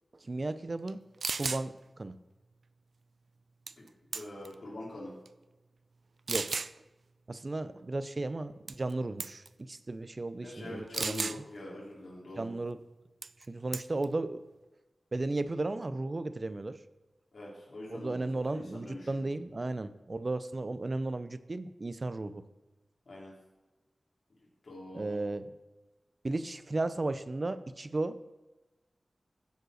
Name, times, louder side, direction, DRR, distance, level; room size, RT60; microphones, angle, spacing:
voice 1, 0.2-1.0 1.4-2.2 6.3-6.5 7.3-11.3 12.4-12.8 13.5-14.4 15.1-16.8 17.9-22.4 24.9-25.5 26.2-28.2, right 2 dB, 45° right, 13 dB, 0.6 m, -35 dB
sound 1, 0.9-1.0 1.2-1.6 3.7-4.5 5.2-5.3 6.3-6.7 8.7-8.9 9.2-9.5 10.9-11.4 13.2-13.4 13.7-14.0, right 4 dB, 75° right, 0.3 m, -34 dB
voice 2, 3.7-5.1 10.4-12.5 17.3-19.2 23.1-23.3 24.6-25.2, left 1 dB, 65° left, -5 dB, 3.4 m, -44 dB
16.0 x 5.3 x 6.4 m, 1.1 s
wide cardioid pair, 80°, 0 cm